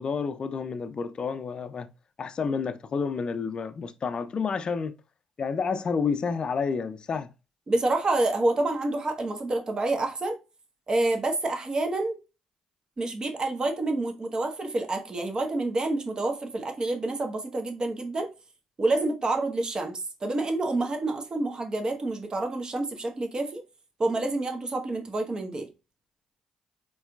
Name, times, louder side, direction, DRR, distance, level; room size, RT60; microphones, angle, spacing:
voice 1, 0.0-1.9 2.2-4.9 5.4-7.3, left 5 dB, 45° left, 0.4 m, -30 dB
voice 2, 7.7-10.4 10.9-12.2 13.0-18.3 18.8-23.6 24.0-25.7, right 2 dB, 35° right, 1.2 m, -28 dB
4.3 x 4.0 x 2.3 m
hypercardioid pair, 55°, 2 cm